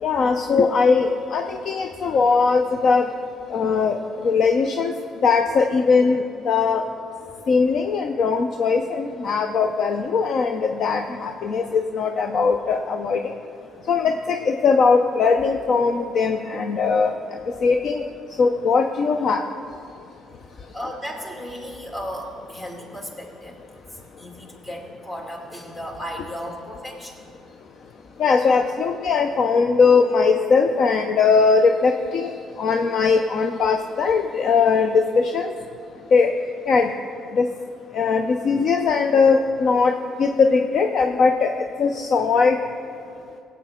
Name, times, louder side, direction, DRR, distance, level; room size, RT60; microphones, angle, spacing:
voice 1, 0.0-3.1 3.5-4.0 4.2-4.9 5.2-6.8 7.5-13.2 13.9-17.1 17.6-18.0 18.4-19.4 28.2-32.3 32.6-35.5 36.1-36.3 36.7-36.9 37.3-37.5 37.9-39.9 40.2-41.5 41.8-42.6, left 5 dB, 60° left, 5 dB, 0.5 m, -20 dB
voice 2, 20.7-23.6 24.2-27.2, equal, 30° left, -1 dB, 2.6 m, -35 dB
17.5 x 8.2 x 3.7 m, 2.4 s
supercardioid pair, 70°, 0 cm